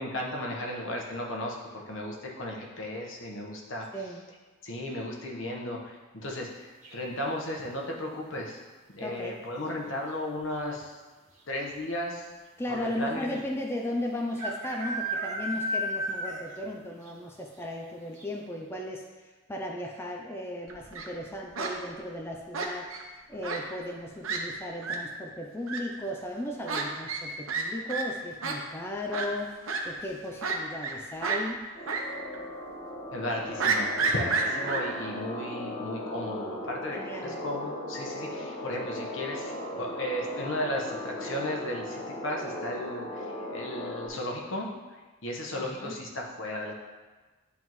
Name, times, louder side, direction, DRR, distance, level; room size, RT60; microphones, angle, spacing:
voice 1, 0.0-3.9 4.6-8.6 8.9-11.0 11.5-12.3 12.7-13.4 33.1-44.7 45.2-46.7, left 1 dB, 70° left, -1 dB, 1.1 m, -35 dB
sound 1, 6.8-7.3 9.1-9.5 9.8-9.9 10.1-10.6 11.4-11.5 11.7-11.8 13.3-13.4 14.4-16.7 17.0-17.1 17.6-17.7 18.2-18.3, equal, 35° right, 1.1 m, -33 dB
voice 2, 9.0-9.4 12.6-31.6 36.9-37.4 45.5-45.9, left 1 dB, 10° left, 0 dB, 0.4 m, -36 dB
Fowl, 20.7-21.1 21.6-21.7 22.5-23.0 23.4-23.6 23.9-24.0 24.2-24.4 24.8-25.0 25.7-25.8 26.7-26.8 27.1-27.2 27.5-27.6 27.9-28.0 28.4-28.5 29.1-29.3 29.7-29.8 30.4-30.9 31.2-31.4 31.9-32.0 32.3-32.4 33.6-34.8, right 5 dB, 85° right, 0.9 m, -29 dB
sound 2, 31.7-44.1, left 1 dB, 40° left, 1.1 m, -37 dB
11.0 x 3.6 x 3.1 m, 1.3 s
head